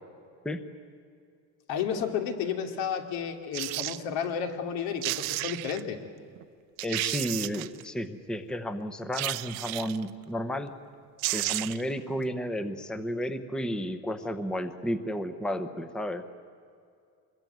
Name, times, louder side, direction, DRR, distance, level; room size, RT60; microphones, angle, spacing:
voice 1, 1.7-6.0, left 7 dB, 85° left, 5 dB, 2.7 m, -32 dB
sound 1, 3.5-4.0 4.7-4.8 5.0-5.8 6.4-6.5 6.8-7.8 9.1-10.0 10.9-11.0 11.2-11.9 12.2-12.3, right 20 dB, 75° right, 0.8 m, -32 dB
voice 2, 6.8-10.7 11.3-16.2, equal, ahead, 9 dB, 0.8 m, -32 dB
25.0 x 21.5 x 9.3 m, 2.4 s
cardioid pair, 170°, 35 cm